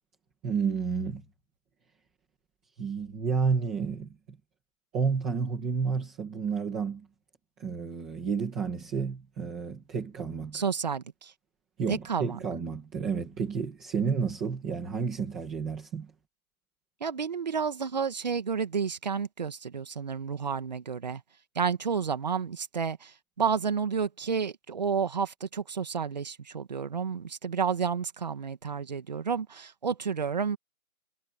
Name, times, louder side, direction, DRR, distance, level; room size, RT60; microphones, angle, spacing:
voice 1, 0.4-1.2 2.8-4.1 4.9-7.1 7.6-10.6 11.8-16.1, right 5 dB, ahead, 1.0 m, -30 dB
voice 2, 10.5-11.3 11.9-12.4 17.0-21.2 21.6-30.6, right 6 dB, 30° right, 2.0 m, -31 dB
figure-of-eight pair, 170°, 43 cm